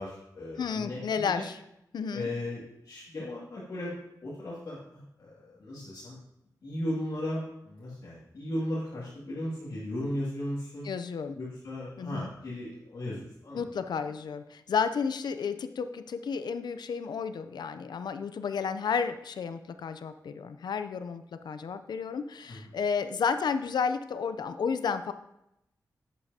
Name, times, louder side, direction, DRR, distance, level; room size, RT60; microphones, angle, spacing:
voice 1, 0.0-1.5 2.1-6.2 6.6-10.9 11.4-13.7 22.5-22.6, left 1 dB, 60° left, -8 dB, 2.2 m, -36 dB
voice 2, 0.6-1.6 1.9-2.3 10.8-11.4 12.0-12.3 13.5-25.1, left 6 dB, 85° left, 10 dB, 0.5 m, -32 dB
11.0 x 8.5 x 2.8 m, 0.83 s
wide cardioid pair, 175°, 7 cm